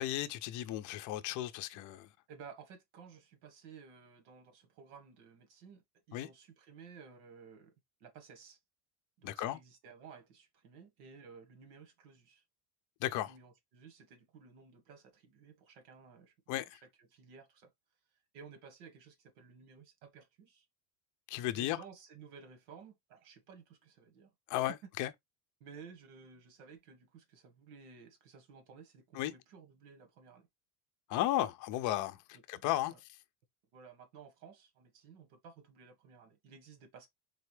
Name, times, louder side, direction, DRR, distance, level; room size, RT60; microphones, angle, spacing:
voice 1, 0.0-2.1 6.1-6.3 9.2-9.6 13.0-13.3 16.5-16.8 21.3-21.8 24.5-25.1 29.1-29.3 31.1-32.2 32.5-32.9, left 14 dB, 45° left, 0.6 m, -34 dB
voice 2, 2.3-5.8 6.1-7.7 8.0-8.6 9.2-12.4 13.3-16.3 16.7-17.7 18.3-20.6 21.5-24.3 25.6-30.5 32.5-33.0 33.7-37.1, right 6 dB, 80° right, 1.6 m, -55 dB
4.1 x 3.3 x 3.2 m
cardioid pair, 145°, 45 cm